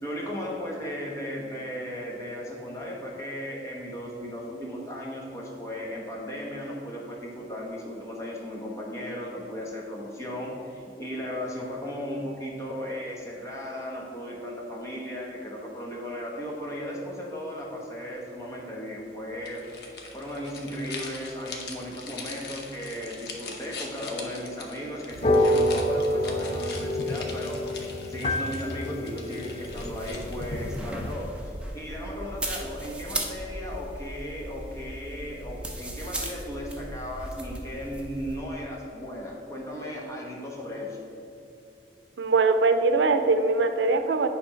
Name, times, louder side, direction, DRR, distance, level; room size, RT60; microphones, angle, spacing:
voice 1, 0.0-27.6 28.1-41.0, equal, 15° left, -3 dB, 1.2 m, -36 dB
sound 1, 19.4-30.6, left 4 dB, 65° left, 0.9 m, -42 dB
sound 2, 25.1-31.1, left 1 dB, 35° left, 0.4 m, -28 dB
sound 3, 29.7-38.4, right 1 dB, 5° right, 0.6 m, -37 dB
voice 2, 42.2-44.3, right 3 dB, 90° right, 8 dB, 0.5 m, -22 dB
8.6 x 3.5 x 5.6 m, 2.7 s
head